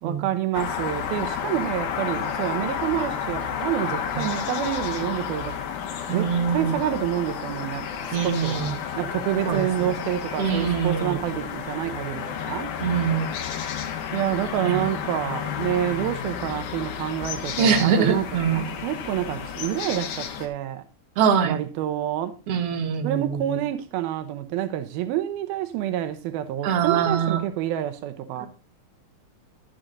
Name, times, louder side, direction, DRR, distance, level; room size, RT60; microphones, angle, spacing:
voice 1, 0.0-5.5 6.1-8.7 9.0-12.7 14.1-18.3 18.5-20.8 21.4-22.3 23.0-28.5, right 12 dB, 85° right, 2.7 m, -28 dB
sound 1, 0.5-20.5, left 8 dB, 90° left, 3.2 m, -31 dB
voice 2, 6.1-6.8 8.1-8.8 9.5-9.9 10.4-11.2 12.8-13.3 14.6-14.8 17.6-18.7 21.2-21.6 22.5-23.6 26.6-27.5 28.4-28.5, right 7 dB, 50° right, 2.1 m, -24 dB
11.5 x 7.7 x 3.9 m
omnidirectional pair, 4.3 m